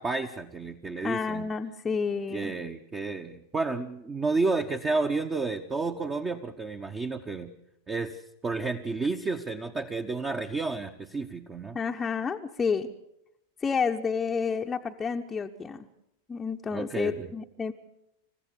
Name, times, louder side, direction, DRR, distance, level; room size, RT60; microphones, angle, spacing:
voice 1, 0.0-1.5 2.3-7.5 7.9-11.8 16.7-17.3, right 3 dB, 20° right, 5 dB, 1.1 m, -31 dB
voice 2, 1.0-2.5 11.7-12.9 13.6-15.9 16.3-17.7, left 5 dB, 15° left, 2 dB, 0.9 m, -30 dB
28.5 x 15.0 x 7.0 m, 0.84 s
figure-of-eight pair, 90°, 0 cm